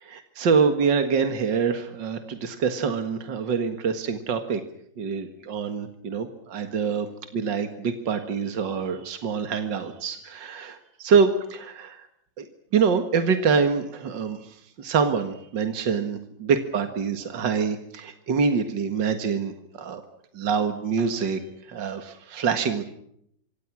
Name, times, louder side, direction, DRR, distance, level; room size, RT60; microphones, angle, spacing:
voice 1, 0.1-4.6 5.0-7.1 7.3-12.0 12.4-12.5 12.7-14.4 14.8-20.0 20.3-21.4 21.7-22.8, right 5 dB, 70° right, 8 dB, 2.4 m, -25 dB
27.5 x 25.5 x 6.2 m, 0.71 s
omnidirectional pair, 2.1 m